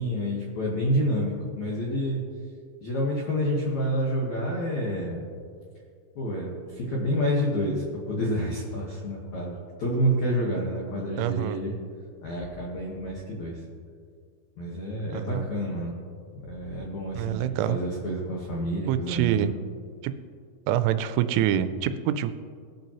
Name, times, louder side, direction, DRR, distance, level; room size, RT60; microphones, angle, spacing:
voice 1, 0.0-2.2 2.8-5.2 6.2-11.7 12.2-13.6 14.6-16.0 16.4-19.5, equal, 70° left, -4 dB, 1.7 m, -28 dB
voice 2, 11.2-11.6 15.1-15.4 17.1-17.8 18.9-19.5 20.0-20.1 20.7-22.3, right 11 dB, 85° right, 11 dB, 3.0 m, -25 dB
20.0 x 8.3 x 3.0 m, 2.2 s
omnidirectional pair, 5.6 m